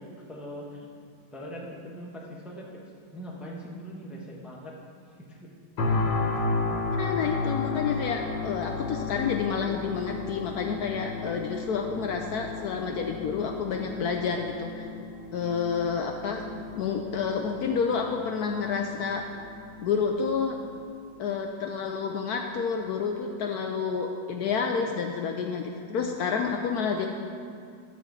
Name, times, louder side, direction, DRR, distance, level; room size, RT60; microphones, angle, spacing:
voice 1, 0.0-2.7 3.1-4.8 5.2-5.5, equal, ahead, -3 dB, 0.8 m, -42 dB
sound 1, 5.8-20.8 21.3-21.5, left 3 dB, 90° left, 2.0 m, -34 dB
voice 2, 6.9-14.9 15.3-16.4 16.8-19.3 19.8-20.6 21.2-27.1, left 6 dB, 70° left, 3 dB, 1.0 m, -29 dB
12.0 x 4.3 x 7.3 m, 2.3 s
omnidirectional pair, 2.0 m